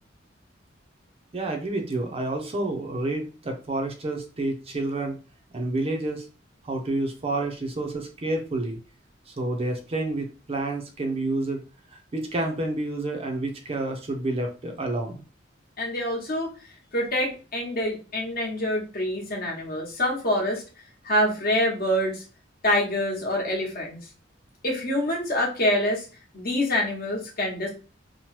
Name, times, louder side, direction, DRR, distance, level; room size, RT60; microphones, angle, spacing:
voice 1, 1.3-5.2 5.5-6.3 6.6-8.8 9.3-11.6 11.9-15.2, right 2 dB, 30° right, 3 dB, 0.5 m, -29 dB
voice 2, 15.8-16.5 16.9-20.6 21.0-22.2 22.6-24.0 24.6-26.1 26.3-27.7, left 1 dB, 50° left, -1 dB, 0.9 m, -26 dB
2.9 x 2.1 x 3.0 m, 0.34 s
head